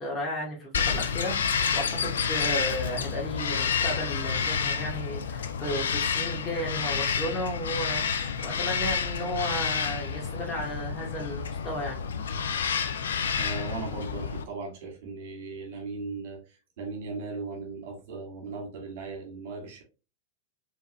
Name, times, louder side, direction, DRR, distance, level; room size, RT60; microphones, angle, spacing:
voice 1, 0.0-12.0, equal, 20° left, -2 dB, 2.2 m, -34 dB
Bird vocalization bird call bird song, 0.7-14.4, left 6 dB, 65° left, 0.5 m, -29 dB
voice 2, 13.4-19.8, right 4 dB, 50° right, 2 dB, 2.0 m, -38 dB
4.4 x 3.5 x 3.1 m, 0.32 s
figure-of-eight pair, 90°, 0 cm